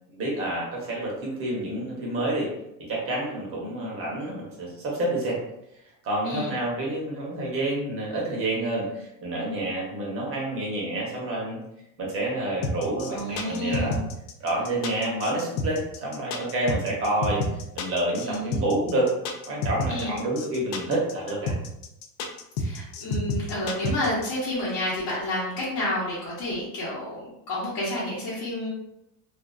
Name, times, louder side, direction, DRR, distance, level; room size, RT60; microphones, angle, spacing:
voice 1, 0.1-2.5 2.8-5.4 6.0-11.6 12.0-13.9 14.4-17.4 17.7-19.1 19.5-21.5, right 1 dB, 30° right, -3 dB, 0.8 m, -28 dB
sound 1, 12.6-24.3, left 2 dB, 70° left, 0.6 m, -29 dB
voice 2, 13.1-14.0 18.2-18.6 19.9-20.2 22.6-28.7, left 1 dB, 50° left, -9 dB, 0.9 m, -30 dB
2.5 x 2.3 x 2.3 m, 0.84 s
supercardioid pair, 140°, 46 cm